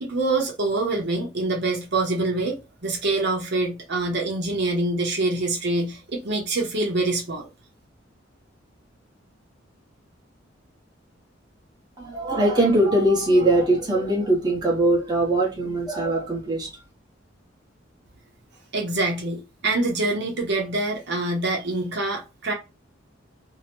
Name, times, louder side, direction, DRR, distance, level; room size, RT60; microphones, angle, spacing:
voice 1, 0.0-7.5 18.7-22.5, right 2 dB, 65° right, 0.8 m, -25 dB
voice 2, 12.0-16.7, right 1 dB, 20° right, 1.0 m, -21 dB
2.8 x 2.1 x 3.0 m
head